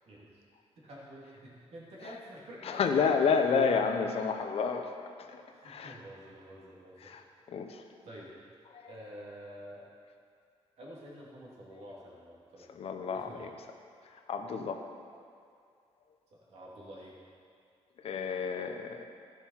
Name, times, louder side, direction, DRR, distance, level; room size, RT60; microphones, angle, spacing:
voice 1, 0.1-0.4 0.8-3.8 5.5-7.2 8.0-8.3 8.9-9.9 10.8-12.7 13.1-13.5 16.3-17.1, equal, 70° right, -5 dB, 2.7 m, -49 dB
voice 2, 2.6-4.9 5.2-6.0 7.0-7.2 7.5-7.8 8.7-8.9 12.7-13.5 14.0-14.8 18.0-19.0, left 5 dB, 60° left, 5 dB, 0.9 m, -30 dB
15.5 x 6.2 x 5.7 m, 2.3 s
cardioid pair, 130°, 11 cm